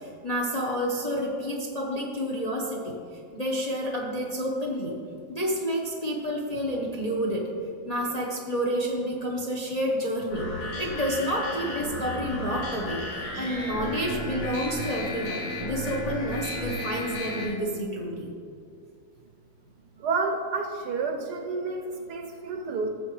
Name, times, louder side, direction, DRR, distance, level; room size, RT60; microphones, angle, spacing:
voice 1, 0.0-3.0 3.3-4.9 5.3-7.5 7.8-10.5 10.8-13.0 13.4-18.3, equal, 30° left, -1 dB, 0.8 m, -29 dB
sound 1, 10.3-17.4, left 1 dB, 75° left, 3.0 m, -33 dB
voice 2, 20.0-22.9, right 4 dB, 65° right, 4 dB, 1.1 m, -30 dB
15.0 x 7.1 x 3.2 m, 2.3 s
omnidirectional pair, 2.1 m